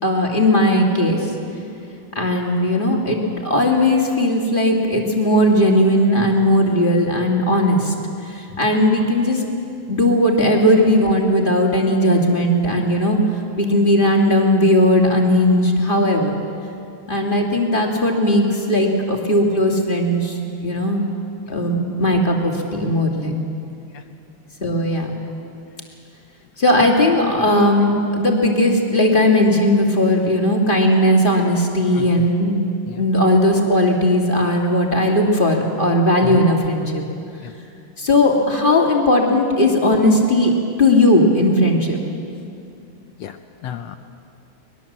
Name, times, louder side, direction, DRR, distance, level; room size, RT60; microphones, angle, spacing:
voice 1, 0.0-1.3 2.1-7.9 8.2-9.4 9.9-13.2 13.6-16.3 17.1-20.4 20.6-21.0 21.5-23.4 24.6-25.1 26.6-32.6 33.0-37.0 38.0-40.5 40.8-42.0, left 1 dB, 20° left, 0 dB, 2.1 m, -17 dB
voice 2, 31.9-32.3 32.9-33.0 36.2-36.5 37.4-37.5 43.2-44.0, left 9 dB, 70° left, 8 dB, 1.6 m, -32 dB
23.0 x 21.0 x 7.4 m, 2.5 s
omnidirectional pair, 3.5 m